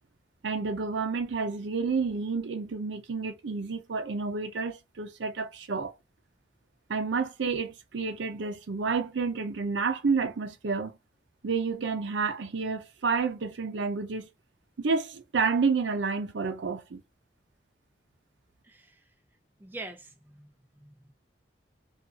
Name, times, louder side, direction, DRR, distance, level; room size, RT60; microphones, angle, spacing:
voice 1, 0.4-5.9 6.9-11.0 11.4-14.3 14.8-17.0, right 4 dB, 75° right, 0.5 m, -30 dB
voice 2, 18.6-19.0 19.6-21.1, right 2 dB, 10° right, 0.4 m, -45 dB
2.5 x 2.4 x 2.3 m
head